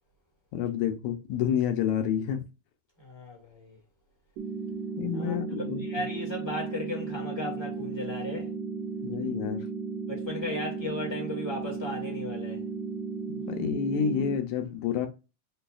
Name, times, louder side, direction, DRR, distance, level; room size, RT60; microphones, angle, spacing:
voice 1, 0.5-2.4 5.0-5.8 9.0-9.7 13.3-15.1, left 8 dB, 75° left, 2.1 m, -29 dB
voice 2, 3.0-3.8 5.1-8.5 10.1-12.6, left 1 dB, 20° left, 0.7 m, -36 dB
sound 1, 4.4-14.4, right 4 dB, 70° right, 2.0 m, -35 dB
6.8 x 2.4 x 2.4 m
omnidirectional pair, 3.6 m